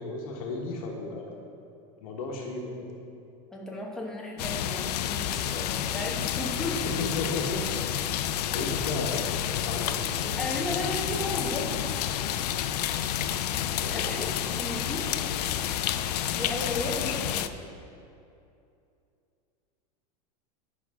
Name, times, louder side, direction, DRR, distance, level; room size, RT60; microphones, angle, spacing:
voice 1, 0.0-1.4 2.0-2.9 6.9-7.6 8.5-10.3 13.7-14.1, left 3 dB, 60° left, 0 dB, 1.3 m, -34 dB
voice 2, 3.5-6.9 8.5-8.7 10.4-12.0 13.8-14.3 14.6-15.1 16.3-17.6, left 1 dB, 5° left, -3 dB, 0.9 m, -35 dB
sound 1, 4.4-17.5, left 10 dB, 80° left, 0.5 m, -30 dB
9.9 x 6.2 x 4.8 m, 2.6 s
supercardioid pair, 175°, 20 cm